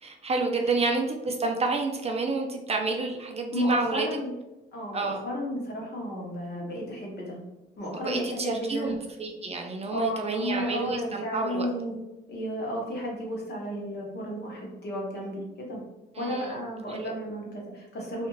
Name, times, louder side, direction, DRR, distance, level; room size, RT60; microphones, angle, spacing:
voice 1, 0.0-4.1 4.9-5.2 7.9-11.7 16.1-16.6 16.9-17.1, right 3 dB, 30° right, 3 dB, 0.4 m, -29 dB
voice 2, 3.5-4.3 4.7-7.4 7.8-8.9 9.9-11.9 12.3-15.8 16.2-18.3, equal, 55° left, -2 dB, 1.0 m, -33 dB
2.5 x 2.3 x 3.0 m, 0.99 s
cardioid pair, 90°, 20 cm